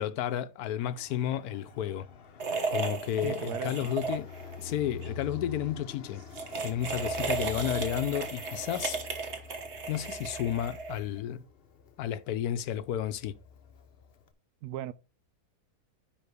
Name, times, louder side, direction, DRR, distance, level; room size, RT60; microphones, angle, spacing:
voice 1, 0.0-2.1 2.7-4.3 4.6-6.2 6.6-9.0 9.9-11.4 12.0-13.3, left 10 dB, 80° left, 1.1 m, -32 dB
Fixed-wing aircraft airplane, 0.8-14.3, left 6 dB, 50° left, 0.8 m, -47 dB
sound 1, 2.4-4.6 4.9-5.1 6.2-11.2, right 4 dB, 45° right, 1.4 m, -34 dB
voice 2, 3.2-3.9 14.6-14.9, right 12 dB, 80° right, 1.1 m, -37 dB
10.0 x 3.6 x 4.8 m
omnidirectional pair, 1.7 m